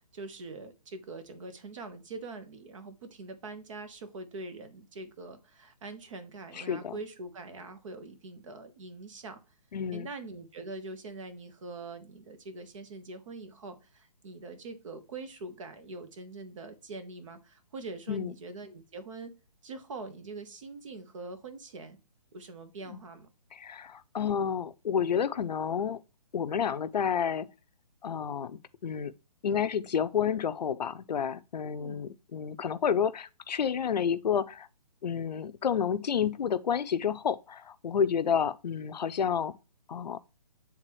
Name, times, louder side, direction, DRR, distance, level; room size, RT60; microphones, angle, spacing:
voice 1, 0.1-9.4 9.9-19.3 19.6-22.0 22.3-23.3 31.8-32.0, right 3 dB, 50° right, 1.2 m, -43 dB
voice 2, 6.5-7.0 9.7-10.1 18.1-18.3 22.9-23.0 23.5-26.0 26.3-27.5 28.0-29.1 29.4-34.7 35.0-39.6 39.9-40.2, left 7 dB, 75° left, 0.6 m, -30 dB
8.9 x 3.6 x 3.0 m
hypercardioid pair, 155°, 21 cm